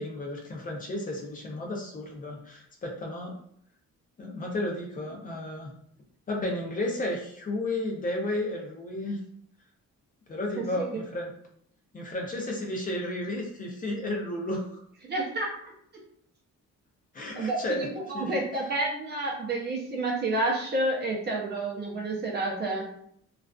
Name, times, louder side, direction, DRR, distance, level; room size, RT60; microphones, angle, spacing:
voice 1, 0.0-3.3 4.2-5.7 6.3-9.2 10.3-11.3 11.9-14.8 17.1-17.9 18.1-18.7, left 1 dB, 30° left, 0 dB, 0.5 m, -33 dB
voice 2, 15.0-15.7 17.4-17.9 18.2-22.9, right 2 dB, 35° right, -2 dB, 0.6 m, -29 dB
2.4 x 2.3 x 2.3 m, 0.68 s
cardioid pair, 155°, 30 cm